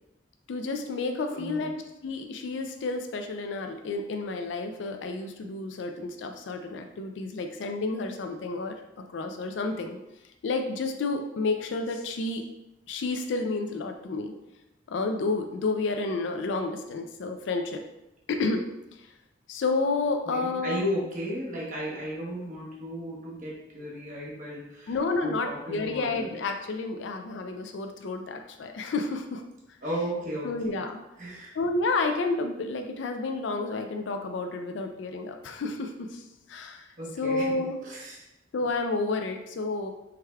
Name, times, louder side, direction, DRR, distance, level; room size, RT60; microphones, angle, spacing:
voice 1, 0.5-1.7 2.0-8.8 9.1-10.0 10.4-12.4 12.9-14.3 14.9-17.8 18.3-18.6 19.0-19.1 19.5-20.9 24.9-29.4 30.4-31.0 31.5-36.9 37.2-37.8 38.5-39.9, left 3 dB, 80° left, 5 dB, 0.4 m, -30 dB
voice 2, 1.3-1.7 20.3-26.3 29.8-30.7 31.2-31.5 37.0-38.2, equal, 45° right, -4 dB, 0.9 m, -35 dB
4.7 x 3.3 x 2.2 m, 0.90 s
head